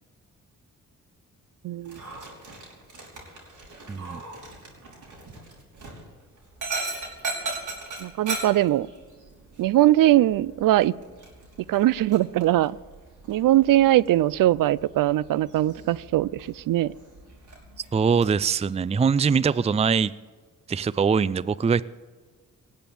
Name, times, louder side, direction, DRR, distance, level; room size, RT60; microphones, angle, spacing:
voice 1, 1.6-2.0 8.0-8.9 9.6-10.9 11.7-12.8 13.3-16.9, right 14 dB, 80° right, 0.5 m, -21 dB
Dog, 1.8-18.4, right 3 dB, 65° right, 5.4 m, -39 dB
voice 2, 3.9-4.2 17.9-20.1 20.7-21.8, right 6 dB, 20° right, 0.4 m, -22 dB
18.5 x 7.9 x 8.7 m
cardioid pair, 65°, 32 cm